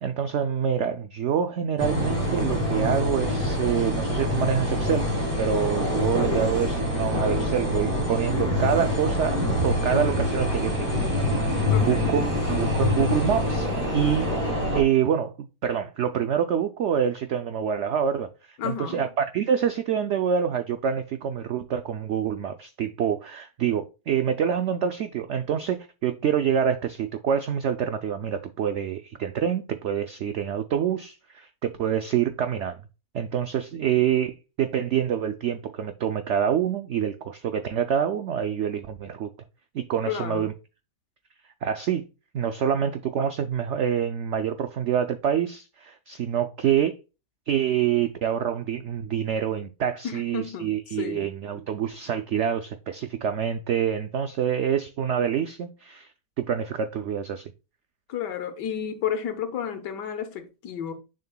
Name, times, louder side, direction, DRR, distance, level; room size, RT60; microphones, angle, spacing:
voice 1, 0.0-5.1 5.4-10.9 11.1-11.3 11.5-14.4 14.7-18.3 18.6-32.8 33.1-39.3 39.7-40.5 41.6-42.0 42.3-46.9 47.5-56.1 56.4-57.5, right 8 dB, 80° right, 0.6 m, -26 dB
sound 1, 1.8-14.8, left 1 dB, 20° right, 2.8 m, -25 dB
voice 2, 11.7-12.1 18.6-19.1 40.1-40.5 50.0-51.3 58.1-60.9, left 8 dB, 90° left, 1.6 m, -32 dB
6.6 x 6.6 x 2.2 m
omnidirectional pair, 1.8 m